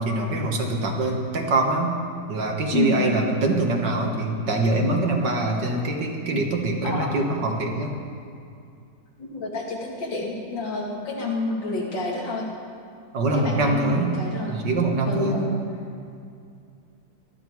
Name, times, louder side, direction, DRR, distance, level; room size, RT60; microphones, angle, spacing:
voice 1, 0.0-1.9 2.3-7.9 13.1-14.1 14.5-15.4, right 2 dB, 70° right, 1 dB, 2.3 m, -24 dB
voice 2, 2.7-3.2 6.8-7.1 9.2-12.5 13.3-14.6 15.1-15.5, left 3 dB, 90° left, -2 dB, 2.9 m, -29 dB
18.0 x 13.0 x 4.7 m, 2.4 s
omnidirectional pair, 2.0 m